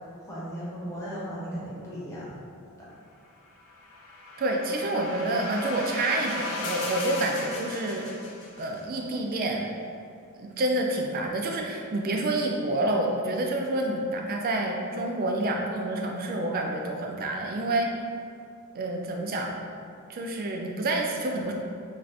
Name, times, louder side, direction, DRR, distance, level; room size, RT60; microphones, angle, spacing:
voice 1, 0.3-2.3 2.8-2.9, equal, 15° left, -9 dB, 0.6 m, -36 dB
sound 1, 3.5-8.8, left 2 dB, 70° left, 0.4 m, -37 dB
voice 2, 4.4-8.1 8.6-9.7 10.4-17.9 18.7-19.5 20.1-21.5, right 1 dB, 40° right, 1 dB, 0.3 m, -28 dB
2.5 x 2.4 x 3.3 m, 2.4 s
head